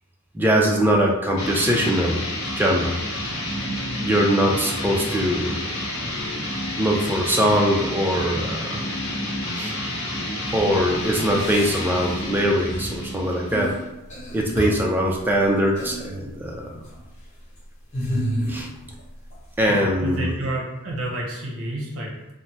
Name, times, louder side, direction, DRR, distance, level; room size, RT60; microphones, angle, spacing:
voice 1, 0.3-2.2 2.6-3.0 4.0-5.6 6.8-8.9 9.5-9.7 10.5-13.7 14.3-16.8 18.5-18.7 19.6-20.3, equal, 10° right, -1 dB, 0.3 m, -22 dB
sound 1, 1.4-13.9, left 1 dB, 65° left, 0.8 m, -29 dB
sound 2, 10.5-10.7 11.3-12.4 12.7-13.0 13.5-13.8 14.1-15.0 15.7-16.1 16.7-17.0 17.9-19.0 19.3-19.4, equal, 30° left, 0.8 m, -30 dB
voice 2, 19.6-22.3, right 1 dB, 60° right, -2 dB, 0.7 m, -30 dB
3.2 x 2.1 x 2.7 m, 1.0 s
head